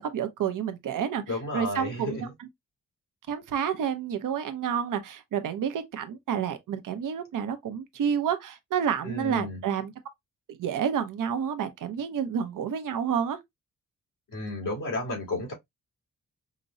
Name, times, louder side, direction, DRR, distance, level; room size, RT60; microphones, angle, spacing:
voice 1, 0.0-1.2 1.5-2.5 3.3-9.9 10.6-13.4, right 8 dB, 90° right, 0.8 m, -29 dB
voice 2, 1.3-2.2 9.0-9.6 14.3-15.5, left 2 dB, 85° left, 2.2 m, -32 dB
5.1 x 2.0 x 2.6 m
wide cardioid pair, 145°, 31 cm